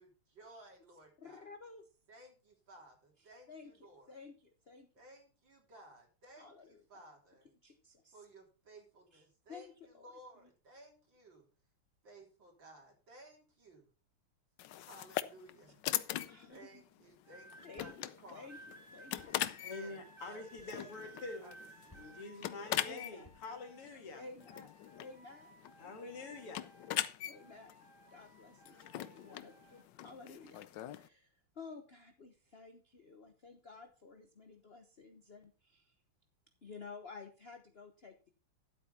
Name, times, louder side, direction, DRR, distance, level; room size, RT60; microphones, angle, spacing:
voice 1, 0.0-1.5 2.1-4.1 4.9-7.5 8.1-11.5 12.0-13.9 14.7-15.8 16.5-18.5 19.3-21.1 21.4-22.1, right 1 dB, 55° right, 4.2 m, -58 dB
voice 2, 1.2-1.9 3.2-4.9 6.4-6.8 7.6-8.2 9.1-9.2 9.5-10.1 16.3-16.8 17.6-19.4 20.2-20.4 22.8-23.3 24.2-26.5 27.2-27.7 28.1-35.9 36.6-38.3, left 4 dB, 40° left, 0.9 m, -53 dB
sound 1, 14.6-31.1, left 13 dB, 70° left, 1.1 m, -42 dB
sound 2, 16.5-16.9 17.7-18.1 19.2-19.5 20.6-20.8 21.9-22.4 23.2-23.7, left 1 dB, 10° left, 2.3 m, -63 dB
sound 3, 17.2-18.0 18.5-24.0 24.4-27.0 27.3-29.8 30.6-30.9, right 2 dB, 15° right, 3.4 m, -58 dB
voice 3, 19.7-21.5 21.9-24.2 25.8-26.6, left 3 dB, 85° left, 3.1 m, -46 dB
12.5 x 8.2 x 4.3 m
omnidirectional pair, 2.4 m